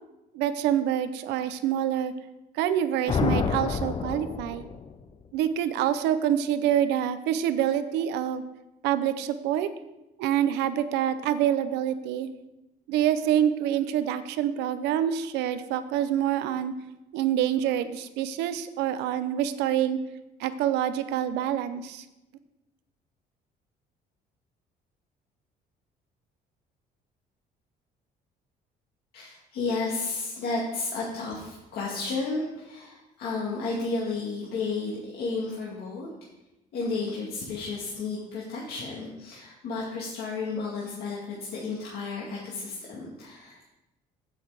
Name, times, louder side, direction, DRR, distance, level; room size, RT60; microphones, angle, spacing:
voice 1, 0.3-2.1 2.5-4.6 5.3-8.4 8.8-9.7 10.2-12.3 12.9-16.7 17.1-20.0 20.4-22.0, right 10 dB, 90° right, 12 dB, 0.7 m, -26 dB
sound 1, 3.1-5.0, left 5 dB, 35° left, 0.6 m, -28 dB
voice 2, 29.1-36.1 36.7-43.6, left 3 dB, 70° left, -4 dB, 2.0 m, -32 dB
8.5 x 8.0 x 4.9 m, 0.96 s
cardioid pair, 110°, 17 cm